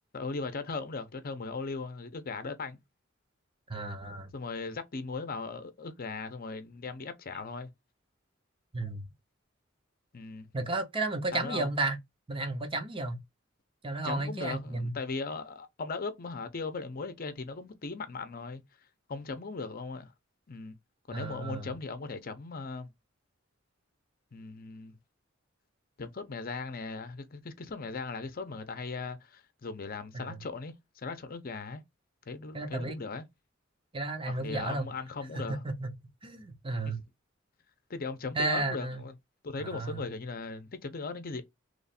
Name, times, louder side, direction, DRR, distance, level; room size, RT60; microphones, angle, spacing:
voice 1, 0.1-2.8 4.3-7.7 10.1-10.5 11.3-11.7 14.0-18.6 19.1-20.1 20.5-20.7 21.1-22.9 24.3-25.0 26.0-30.7 31.0-31.8 32.3-33.2 34.2-35.6 36.8-37.0 37.9-39.1 39.4-41.4, left 4 dB, 45° left, 0.7 m, -38 dB
voice 2, 3.7-4.3 8.7-9.0 10.5-12.0 12.3-13.2 13.8-14.9 21.1-21.7 32.5-33.0 33.9-34.9 35.4-35.9 36.2-37.0 38.3-39.0 39.6-40.0, right 2 dB, 25° right, 0.7 m, -33 dB
3.1 x 2.4 x 4.1 m
head